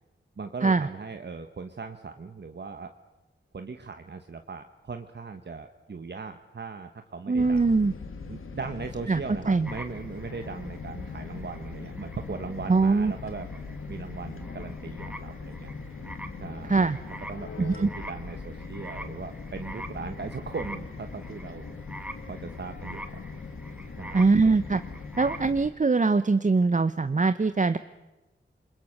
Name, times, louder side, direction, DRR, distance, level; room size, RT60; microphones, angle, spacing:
voice 1, 0.4-2.9 3.5-7.6 8.3-13.5 13.9-15.7 16.4-16.8 17.3-21.6 22.3-23.0 24.0-24.3, right 4 dB, 55° right, 7 dB, 1.3 m, -38 dB
sound 1, 7.3-25.7, left 4 dB, 85° left, 2.1 m, -40 dB
voice 2, 7.3-7.9 9.1-9.2 9.5-9.7 12.7-13.1 16.7-17.0 17.6-17.9 24.1-24.8 25.2-27.8, right 4 dB, 40° right, 12 dB, 0.8 m, -22 dB
sound 2, 9.6-25.5, right 1 dB, 5° right, 1.9 m, -45 dB
29.0 x 21.5 x 6.6 m, 1.1 s
wide cardioid pair, 70°, 21 cm